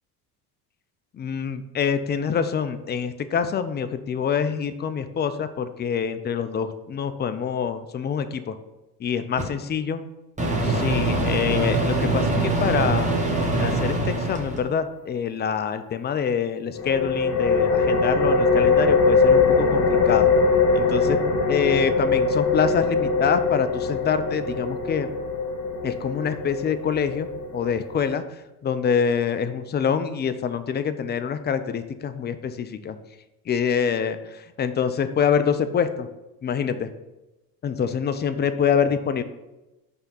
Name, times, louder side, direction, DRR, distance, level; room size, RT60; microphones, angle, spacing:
voice 1, 1.1-8.6 9.0-10.0 10.6-13.3 13.6-20.3 20.7-21.2 21.5-25.1 25.8-28.2 28.6-33.0 33.5-36.1 36.4-36.9 37.6-39.2, left 7 dB, 25° left, 11 dB, 0.4 m, -25 dB
Microwave oven, 9.4-9.5 10.4-14.6, right 2 dB, 15° right, 1.4 m, -23 dB
sound 1, 16.7-28.1, left 4 dB, 60° left, 1.8 m, -22 dB
5.5 x 3.5 x 5.6 m, 1.0 s
hypercardioid pair, 75°, 48 cm